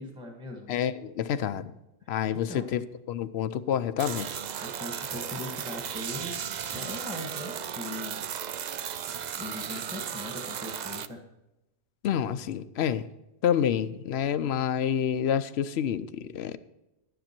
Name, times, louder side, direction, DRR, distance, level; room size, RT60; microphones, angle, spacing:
voice 1, 0.0-0.8 2.0-2.1 2.5-2.7 4.6-6.3 6.7-8.9 9.4-11.2, left 2 dB, 5° right, 1 dB, 1.4 m, -40 dB
voice 2, 0.7-1.7 2.1-4.3 12.0-13.1 13.4-16.6, left 9 dB, 65° left, 14 dB, 0.8 m, -28 dB
sound 1, 4.0-11.1, right 8 dB, 60° right, 0.4 m, -35 dB
11.5 x 10.0 x 4.5 m, 0.95 s
omnidirectional pair, 1.2 m